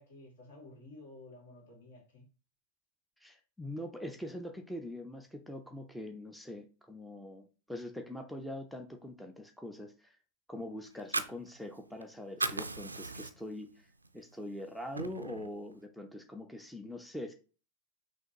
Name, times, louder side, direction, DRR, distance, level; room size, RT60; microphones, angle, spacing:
voice 1, 0.0-2.3, left 2 dB, 60° left, 2.0 m, -53 dB
voice 2, 3.2-10.2 10.5-17.3, left 1 dB, ahead, 0.5 m, -43 dB
Fire, 10.9-12.0 12.3-13.6 14.0-14.2 14.6-15.6, right 3 dB, 80° right, 0.4 m, -36 dB
5.7 x 2.5 x 2.9 m
figure-of-eight pair, 90°, 0 cm